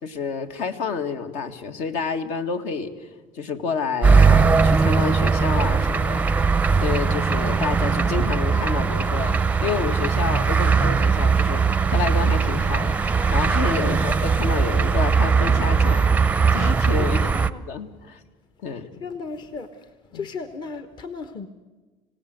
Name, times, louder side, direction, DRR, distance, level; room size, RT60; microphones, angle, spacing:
voice 1, 0.0-3.1 3.3-11.6 11.9-17.2 17.7-18.2 18.6-18.9 20.1-20.2, left 5 dB, 65° left, 7 dB, 1.8 m, -29 dB
sound 1, 4.0-17.5, right 5 dB, 10° right, 0.6 m, -20 dB
voice 2, 13.7-14.1 17.0-17.6 19.0-21.5, left 4 dB, 40° left, 10 dB, 1.2 m, -35 dB
26.0 x 17.0 x 8.0 m, 1.3 s
cardioid pair, 125°, 12 cm